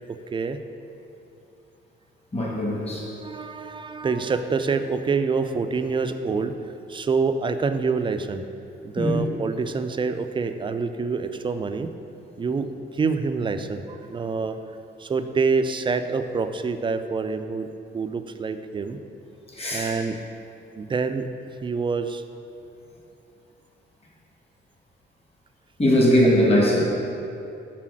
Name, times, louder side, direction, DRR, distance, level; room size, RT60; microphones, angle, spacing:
voice 1, 2.3-3.1 9.0-9.2 19.5-19.9 25.8-26.8, equal, 30° left, -3 dB, 1.6 m, -20 dB
voice 2, 3.1-6.5 6.9-8.4 8.8-11.9 12.4-14.6 15.0-17.7 17.9-19.0 19.7-20.2 20.7-21.3 21.6-22.2, right 4 dB, 25° right, 9 dB, 0.4 m, -26 dB
5.8 x 4.1 x 6.1 m, 2.7 s
cardioid pair, 90°, 20 cm